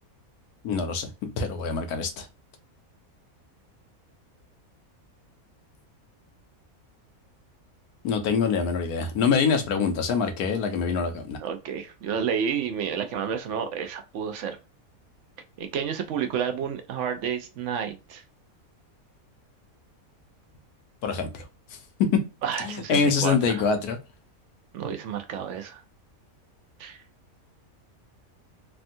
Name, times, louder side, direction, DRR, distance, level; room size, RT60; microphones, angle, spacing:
voice 1, 0.6-1.1 1.4-2.3 8.0-11.4 21.0-21.4 22.0-22.1 22.6-24.0, left 5 dB, 85° left, 1.2 m, -25 dB
voice 2, 11.4-14.6 15.6-18.2 22.4-23.6 24.7-25.8 26.8-27.0, right 7 dB, 65° right, 0.8 m, -30 dB
3.4 x 2.2 x 2.5 m
omnidirectional pair, 1.6 m